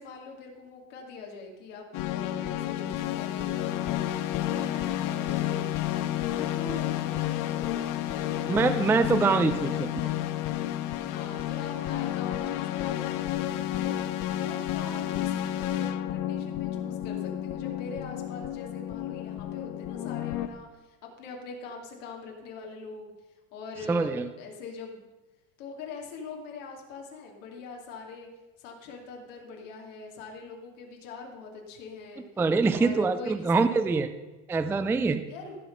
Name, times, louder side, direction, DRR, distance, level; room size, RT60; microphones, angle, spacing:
voice 1, 0.0-4.1 4.5-5.7 6.1-7.8 8.1-9.7 11.0-14.0 14.4-23.1 23.5-25.1 25.6-28.3 28.6-32.3 32.7-33.9 35.3-35.6, left 4 dB, 85° left, 0 dB, 2.6 m, -43 dB
sound 1, 1.9-20.5, left 12 dB, 55° left, 0.9 m, -31 dB
voice 2, 8.5-9.7 23.9-24.3 32.4-34.1 34.5-35.2, right 4 dB, 5° right, 10 dB, 0.3 m, -24 dB
15.0 x 5.9 x 5.4 m, 1.2 s
supercardioid pair, 120°, 38 cm